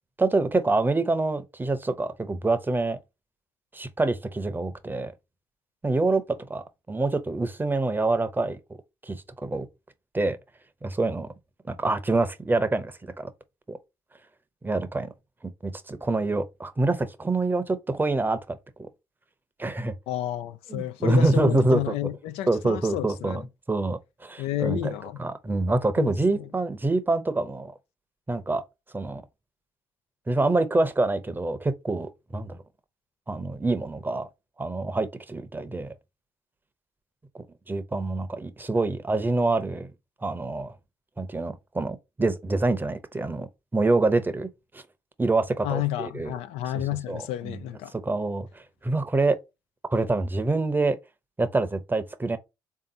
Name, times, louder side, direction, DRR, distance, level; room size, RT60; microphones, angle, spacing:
voice 1, 0.2-3.0 3.7-5.1 5.8-6.2 6.5-8.6 9.0-9.7 10.1-10.4 10.8-11.3 11.7-13.3 13.7-13.8 14.6-15.1 15.4-18.6 19.6-19.9 20.7-21.9 22.5-23.4 23.7-24.9 25.2-27.7 28.3-28.6 28.9-29.2 30.3-32.6 33.3-34.3 34.6-35.9 37.3-39.9 40.2-40.7 41.2-44.5 44.7-44.8 45.2-46.3 47.1-47.6 48.0-49.4 49.9-51.0 51.4-52.4, right 2 dB, 20° right, 0.7 m, -26 dB
voice 2, 20.1-23.4 24.4-25.2 26.0-26.5 45.6-47.9, left 13 dB, 85° left, 0.4 m, -31 dB
3.5 x 2.8 x 3.7 m
supercardioid pair, 60°, 10 cm